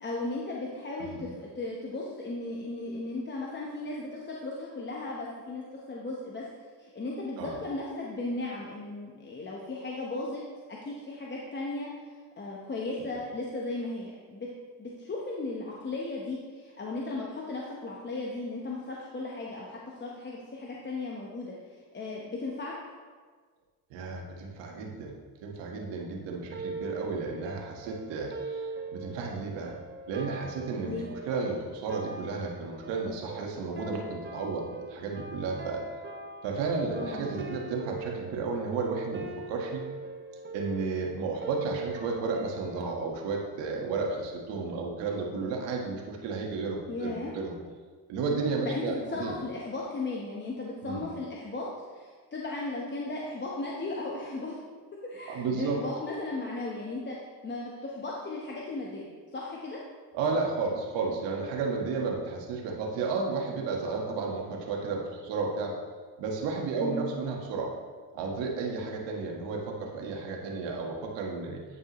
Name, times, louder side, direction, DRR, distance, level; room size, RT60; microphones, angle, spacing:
voice 1, 0.0-6.4 6.8-10.4 10.8-11.9 12.4-14.5 14.8-21.5 21.9-22.7 30.8-31.1 36.9-37.4 46.9-47.3 48.6-54.6 55.1-57.2 57.4-59.8 66.8-67.0, left 2 dB, 25° left, -3 dB, 1.0 m, -36 dB
voice 2, 23.9-25.1 25.4-29.7 30.1-35.8 36.4-39.8 40.5-47.5 48.1-49.4 50.8-51.0 55.3-55.8 60.1-65.8 66.2-67.7 68.1-71.6, right 4 dB, 80° right, 0 dB, 1.4 m, -33 dB
sound 1, 26.5-42.9, right 3 dB, 25° right, 0.8 m, -41 dB
9.6 x 5.4 x 3.0 m, 1.5 s
cardioid pair, 95°, 42 cm